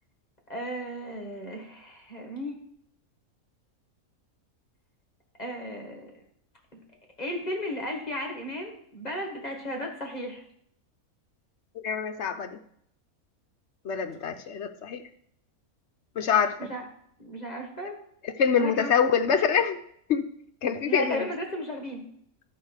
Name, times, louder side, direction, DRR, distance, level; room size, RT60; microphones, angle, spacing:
voice 1, 0.5-2.6 5.4-6.1 6.7-6.8 7.2-10.4 16.6-16.9 17.2-18.0 18.6-18.9 20.9-22.1, equal, 30° left, 1 dB, 1.7 m, -34 dB
voice 2, 11.8-12.6 13.8-15.0 16.2-16.7 18.2-19.8 20.1-20.2 20.6-21.3, left 7 dB, 60° left, 9 dB, 0.9 m, -25 dB
12.0 x 4.7 x 6.5 m, 0.69 s
omnidirectional pair, 1.5 m